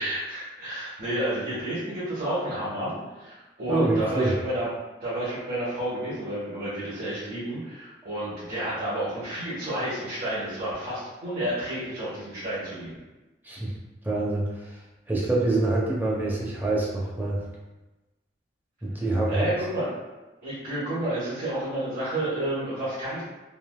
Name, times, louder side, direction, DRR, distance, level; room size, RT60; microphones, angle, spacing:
voice 1, 0.0-4.7 5.0-12.9 19.3-19.9 20.4-23.2, right 1 dB, 55° right, -12 dB, 1.0 m, -30 dB
voice 2, 3.7-4.3 13.4-13.7 14.0-14.7 15.1-17.4 18.8-19.5, right 2 dB, 10° right, -5 dB, 0.5 m, -25 dB
3.3 x 2.4 x 2.2 m, 1.1 s
head